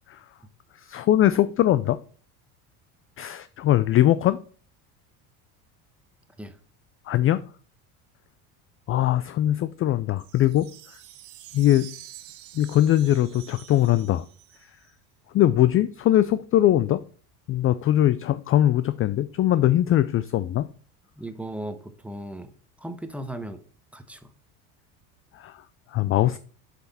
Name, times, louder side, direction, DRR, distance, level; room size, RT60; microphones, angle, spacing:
voice 1, 0.8-2.0 3.2-4.4 7.1-7.4 8.9-10.7 11.5-11.9 12.5-14.3 15.3-17.0 17.5-20.7 25.3-25.6 25.9-26.4, left 13 dB, 30° left, 15 dB, 0.4 m, -21 dB
sound 1, 10.2-14.9, right 13 dB, 65° right, 1.2 m, -47 dB
voice 2, 21.2-22.5 22.8-23.6 23.9-24.3, right 1 dB, 5° right, 9 dB, 1.0 m, -36 dB
7.7 x 5.9 x 4.1 m, 0.42 s
supercardioid pair, 95°, 44 cm